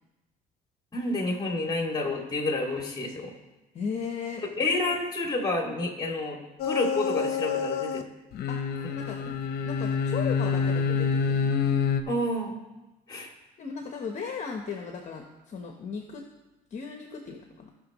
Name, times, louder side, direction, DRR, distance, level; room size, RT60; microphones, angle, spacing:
voice 1, 0.9-3.3 4.6-8.0 12.1-12.5 13.1-13.3, left 2 dB, 25° left, 1 dB, 2.4 m, -29 dB
voice 2, 3.7-4.4 4.7-5.0 8.5-8.6 8.9-9.2 9.7-11.6 13.6-16.2 16.7-17.7, left 6 dB, 45° left, 3 dB, 1.0 m, -36 dB
sound 1, 6.6-8.0 8.3-12.0, left 6 dB, 70° left, 0.8 m, -27 dB
18.0 x 6.1 x 3.1 m, 1.1 s
cardioid pair, 110°, 17 cm